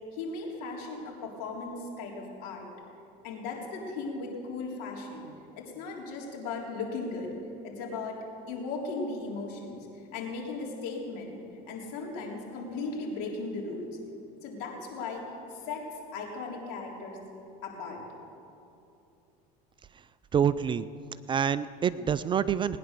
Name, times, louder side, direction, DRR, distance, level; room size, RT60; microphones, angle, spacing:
voice 1, 0.1-2.7 3.2-5.3 5.6-7.3 7.6-11.4 11.7-13.9 14.4-17.2 17.6-18.0, left 3 dB, 75° left, -1 dB, 3.7 m, -37 dB
voice 2, 20.3-20.9 21.3-22.8, right 8 dB, 25° right, 15 dB, 0.4 m, -26 dB
19.5 x 10.0 x 6.8 m, 2.7 s
supercardioid pair, 110°, 19 cm